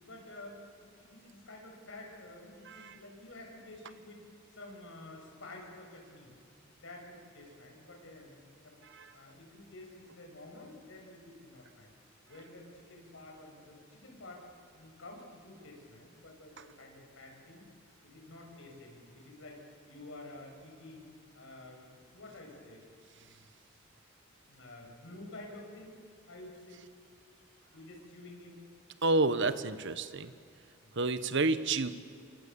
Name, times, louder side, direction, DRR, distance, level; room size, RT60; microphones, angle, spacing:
voice 1, 0.0-4.2 4.5-6.3 6.8-8.7 9.1-11.9 12.3-14.4 14.7-17.7 18.0-19.6 19.9-21.1 21.3-22.8 23.2-23.5 24.5-25.9 26.3-26.8 27.7-28.6 30.8-31.0, left 2 dB, 65° left, 0 dB, 7.1 m, -50 dB
voice 2, 2.6-3.0 8.8-9.1 29.0-30.3 30.9-31.9, right 3 dB, 60° right, 12 dB, 1.3 m, -30 dB
28.5 x 24.5 x 7.0 m, 2.3 s
head